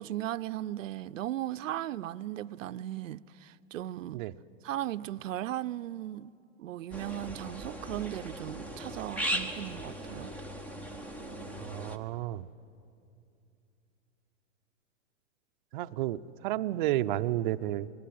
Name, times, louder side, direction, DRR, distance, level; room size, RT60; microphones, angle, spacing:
voice 1, 0.0-4.2 4.6-6.3 6.6-10.3, right 13 dB, 85° right, 0.6 m, -37 dB
sound 1, 6.9-12.0, right 1 dB, 5° left, 0.5 m, -38 dB
voice 2, 11.6-12.5 15.7-17.9, right 14 dB, 45° right, 0.5 m, -31 dB
21.5 x 16.0 x 9.3 m
hypercardioid pair, 145°, 37 cm